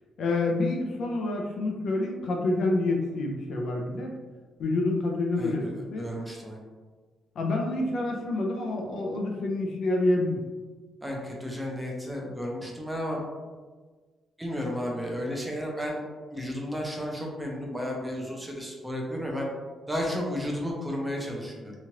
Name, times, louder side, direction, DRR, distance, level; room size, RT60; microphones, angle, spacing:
voice 1, 0.2-4.1 4.6-6.1 7.4-10.4, left 2 dB, 65° left, 1 dB, 0.4 m, -27 dB
voice 2, 5.4-6.6 11.0-13.2 14.4-16.0 16.3-19.5 19.9-21.7, equal, 5° right, -1 dB, 0.5 m, -33 dB
3.0 x 2.4 x 2.8 m, 1.4 s
cardioid pair, 135°, 0 cm